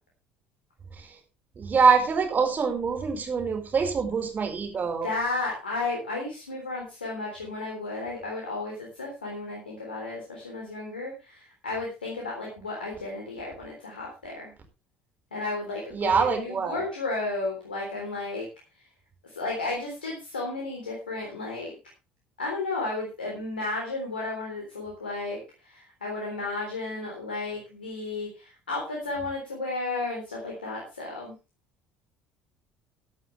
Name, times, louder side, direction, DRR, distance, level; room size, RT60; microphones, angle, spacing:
voice 1, 1.6-5.1 15.9-16.8, right 5 dB, 35° right, 5 dB, 4.7 m, -24 dB
voice 2, 5.0-14.5 15.3-18.5 18.7-18.9 19.2-21.7 22.4-31.3, left 3 dB, 80° left, -1 dB, 3.6 m, -33 dB
15.0 x 11.5 x 3.3 m, 0.29 s
figure-of-eight pair, 55°, 5 cm